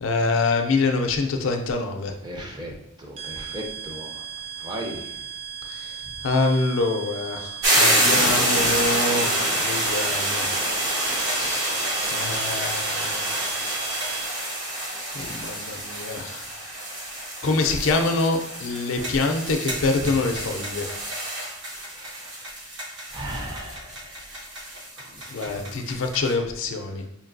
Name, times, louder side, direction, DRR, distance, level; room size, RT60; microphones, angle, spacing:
voice 1, 0.0-2.1 5.7-5.9 6.2-9.3 9.6-10.4 11.2-11.7 12.1-13.4 15.1-16.4 17.4-20.9 25.3-27.0, left 3 dB, 60° left, 5 dB, 0.4 m, -25 dB
voice 2, 2.2-2.7 3.0-4.2 4.6-5.1 20.0-20.1 21.8-22.3 23.1-24.2 25.0-25.8, equal, 20° right, 0 dB, 0.5 m, -36 dB
sound 1, 3.2-14.6, right 9 dB, 75° right, 0.5 m, -37 dB
sound 2, 7.6-26.3, right 1 dB, 60° right, 1.1 m, -27 dB
5.1 x 2.7 x 2.6 m, 0.76 s
head